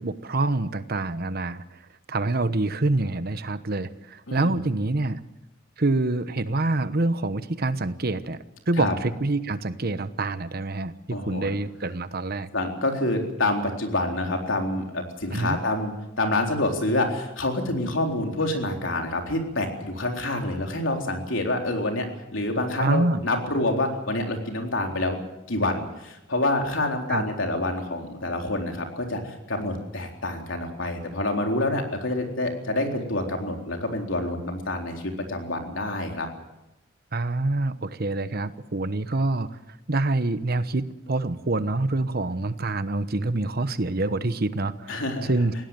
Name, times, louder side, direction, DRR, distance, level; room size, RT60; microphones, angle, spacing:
voice 1, 0.0-1.6 2.1-5.2 5.8-8.4 8.7-12.5 15.3-15.6 22.8-23.3 27.1-27.2 37.1-39.6 39.9-45.5, right 2 dB, 50° right, 12 dB, 1.1 m, -26 dB
voice 2, 4.3-4.6 8.8-8.9 11.1-11.5 12.5-25.2 25.5-35.0 35.3-36.3 44.9-45.3, left 2 dB, 75° left, 2 dB, 4.0 m, -27 dB
20.5 x 17.0 x 9.0 m, 0.94 s
head